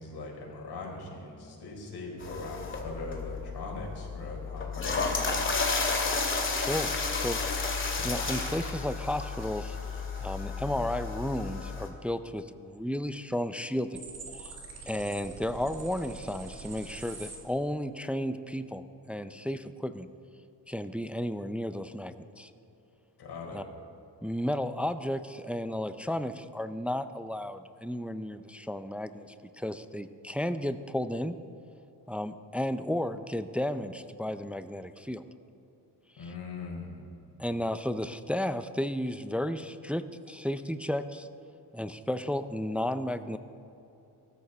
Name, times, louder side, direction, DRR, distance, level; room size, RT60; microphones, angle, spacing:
voice 1, 0.0-5.4 23.2-23.6 36.2-37.0, left 3 dB, 65° left, -1 dB, 4.6 m, -40 dB
sound 1, 2.2-11.9, left 4 dB, 30° left, 2.1 m, -32 dB
voice 2, 6.5-7.4 8.0-9.8 10.2-14.0 14.3-14.5 14.9-20.1 20.7-22.5 23.5-23.6 24.2-31.4 32.1-35.2 36.2-36.3 37.4-41.3 41.7-43.4, left 1 dB, 5° right, 10 dB, 0.3 m, -33 dB
sound 2, 13.9-17.4, right 4 dB, 35° right, 2.6 m, -44 dB
23.0 x 13.5 x 4.1 m, 3.0 s
wide cardioid pair, 150°, 41 cm